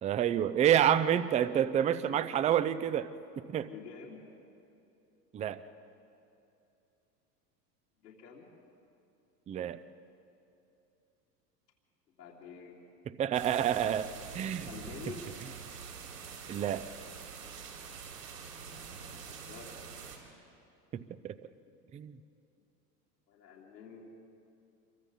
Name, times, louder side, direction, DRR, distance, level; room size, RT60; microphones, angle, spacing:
voice 1, 0.0-3.1 3.4-3.7 5.3-5.6 9.5-9.8 13.2-14.7 16.5-16.9 20.9-21.4 21.9-22.1, right 10 dB, 15° right, 14 dB, 0.5 m, -28 dB
voice 2, 3.6-4.3 8.0-8.5 12.1-12.8 14.7-15.3 19.1-19.9 23.3-24.1, left 6 dB, 75° left, -6 dB, 3.4 m, -48 dB
sound 1, 13.3-20.2, right 6 dB, 80° right, 3.8 m, -45 dB
27.5 x 23.5 x 4.1 m, 2.8 s
figure-of-eight pair, 80°, 48 cm